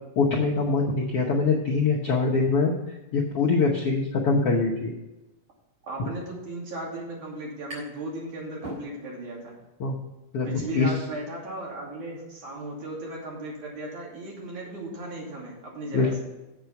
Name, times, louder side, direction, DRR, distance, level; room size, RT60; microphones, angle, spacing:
voice 1, 0.2-2.7 3.1-4.9 6.0-6.1 9.8-10.0 10.3-10.9 15.9-16.1, left 4 dB, 65° left, -2 dB, 1.4 m, -23 dB
voice 2, 5.8-9.6 10.4-16.2, right 1 dB, 60° right, -3 dB, 4.0 m, -36 dB
sound 1, 7.7-8.1 8.4-9.3, right 1 dB, 35° right, 4.3 m, -42 dB
8.0 x 7.5 x 5.9 m, 1.0 s
omnidirectional pair, 3.9 m